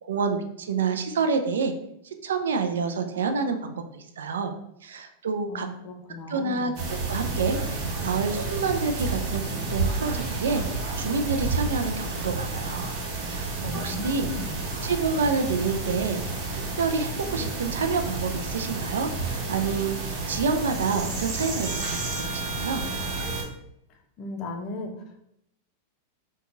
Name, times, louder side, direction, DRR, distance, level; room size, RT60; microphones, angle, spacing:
voice 1, 0.0-1.7 2.2-4.5 4.8-5.7 6.3-7.6 8.0-12.9 13.2-14.3 14.8-16.2 16.8-22.8, right 5 dB, 85° right, 7 dB, 0.3 m, -28 dB
voice 2, 5.5-6.7 13.6-14.6 24.2-25.2, left 2 dB, 45° left, 3 dB, 0.5 m, -36 dB
sound 1, 6.7-23.4, right 3 dB, 45° right, 0.9 m, -30 dB
2.9 x 2.2 x 2.6 m, 0.77 s
hypercardioid pair, 115°, 0 cm